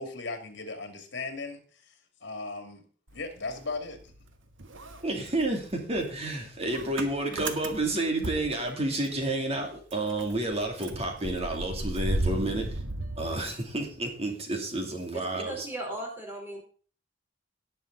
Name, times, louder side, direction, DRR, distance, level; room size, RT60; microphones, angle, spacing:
voice 1, 0.0-1.6 1.9-2.0 2.2-2.8 3.1-4.1, left 3 dB, 65° left, 6 dB, 2.5 m, -37 dB
Motor vehicle (road) / Engine starting, 3.1-4.3 4.6-9.3 9.6-9.7 9.9-14.0, right 2 dB, 80° right, 1.4 m, -35 dB
voice 2, 5.0-12.8 13.2-15.7, right 2 dB, 35° right, 2 dB, 2.7 m, -30 dB
voice 3, 15.1-16.6, right 1 dB, 10° right, 0 dB, 4.1 m, -37 dB
18.0 x 6.4 x 3.9 m, 0.41 s
head